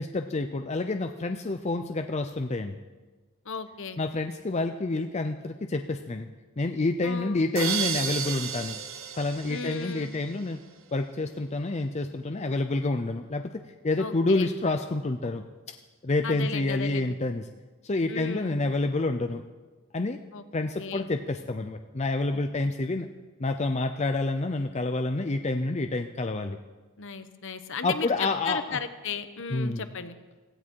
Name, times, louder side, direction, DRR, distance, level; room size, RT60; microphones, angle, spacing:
voice 1, 0.0-2.8 4.0-6.3 6.6-8.8 9.2-10.6 10.9-15.4 16.0-17.5 17.8-19.4 19.9-20.2 20.5-23.1 23.4-26.6 27.8-28.8 29.5-29.8, left 2 dB, 30° left, 6 dB, 0.5 m, -28 dB
voice 2, 3.5-4.0 7.0-7.5 9.5-10.1 14.0-14.5 16.2-17.2 18.1-18.6 20.3-20.4 20.8-21.1 22.3-22.4 27.0-28.1 28.4-30.2, left 5 dB, 60° left, 10 dB, 1.0 m, -35 dB
sound 1, 7.6-10.4, right 7 dB, 60° right, 1.0 m, -32 dB
17.0 x 16.0 x 4.6 m, 1.3 s
head